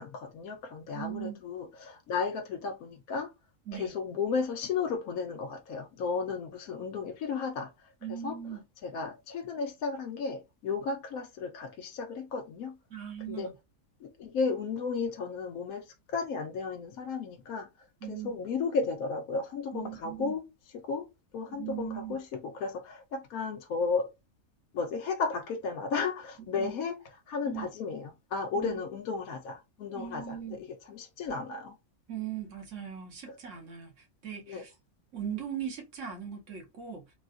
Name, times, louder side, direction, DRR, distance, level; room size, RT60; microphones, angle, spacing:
voice 1, 0.0-3.3 3.7-7.7 8.1-8.4 8.8-12.8 13.3-13.5 14.0-17.7 18.1-20.4 20.7-24.1 24.7-31.8 33.3-33.4 34.5-34.6, left 4 dB, 80° left, 1.1 m, -34 dB
voice 2, 0.9-1.4 3.7-3.9 8.0-8.6 12.9-13.5 18.0-18.4 19.7-20.4 21.5-22.2 26.5-26.7 27.4-27.7 28.5-28.8 29.9-30.6 32.1-34.7 35.1-37.0, right 9 dB, 55° right, 1.5 m, -39 dB
3.8 x 2.4 x 2.4 m
omnidirectional pair, 1.5 m